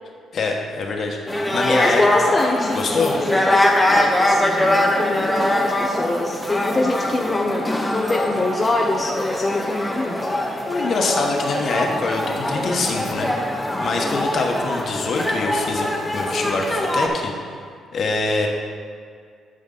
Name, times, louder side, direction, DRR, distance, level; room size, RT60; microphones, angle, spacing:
voice 1, 0.3-2.0 2.7-3.2 10.7-13.5 13.8-17.3 17.9-18.5, left 3 dB, 55° left, 1 dB, 1.2 m, -24 dB
sound 1, 1.3-17.1, left 1 dB, 10° left, 1.0 m, -22 dB
voice 2, 1.7-10.3 14.0-14.3, left 2 dB, 25° left, 1 dB, 0.6 m, -25 dB
11.5 x 5.1 x 3.9 m, 2.2 s
cardioid pair, 90°, 0 cm